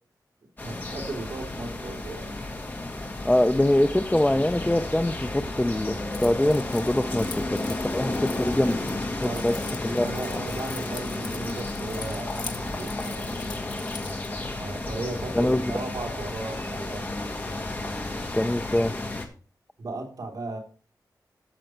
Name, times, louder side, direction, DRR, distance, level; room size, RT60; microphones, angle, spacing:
sound 1, 0.6-19.3, left 2 dB, 25° left, 1.9 m, -32 dB
voice 1, 0.6-2.4 9.2-13.4 14.6-17.1 19.8-20.6, right 2 dB, 65° right, 2 dB, 3.1 m, -36 dB
voice 2, 3.2-7.6 7.9-9.5 9.8-10.1 15.3-15.6 18.3-18.9, left 1 dB, 10° left, 11 dB, 0.5 m, -24 dB
Keys jangling, 6.1-14.3, left 5 dB, 75° left, 1.4 m, -43 dB
13.0 x 7.6 x 4.5 m, 0.39 s
wide cardioid pair, 150°, 7 cm